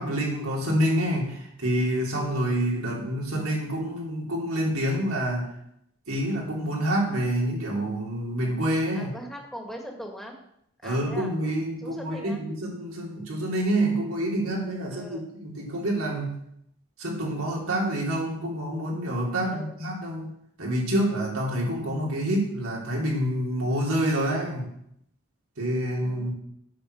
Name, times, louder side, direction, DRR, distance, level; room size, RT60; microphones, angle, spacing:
voice 1, 0.0-5.5 6.1-9.1 10.8-16.4 17.0-20.3 20.6-24.7 25.6-26.3, right 1 dB, 85° right, -2 dB, 3.3 m, -27 dB
voice 2, 8.9-10.4 10.8-11.3 11.8-12.4 14.9-15.3 19.5-19.8 26.0-26.3, equal, ahead, 1 dB, 1.7 m, -40 dB
8.4 x 6.8 x 6.5 m, 0.74 s
head